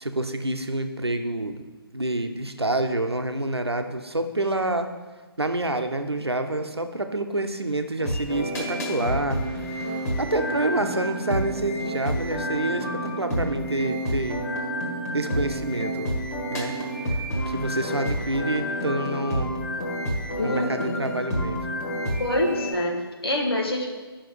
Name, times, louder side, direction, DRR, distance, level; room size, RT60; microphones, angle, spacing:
voice 1, 0.0-1.6 1.9-4.9 5.4-9.4 9.7-9.9 10.2-14.5 15.1-16.1 16.5-16.7 17.0-17.2 17.5-19.5 20.4-21.6, right 1 dB, 90° right, 7 dB, 0.8 m, -27 dB
sound 1, 8.0-22.7, equal, 40° left, 1.9 m, -29 dB
voice 2, 20.4-21.0 22.2-23.9, left 1 dB, 70° left, 0 dB, 1.7 m, -26 dB
10.0 x 6.1 x 3.2 m, 1.3 s
figure-of-eight pair, 140°, 13 cm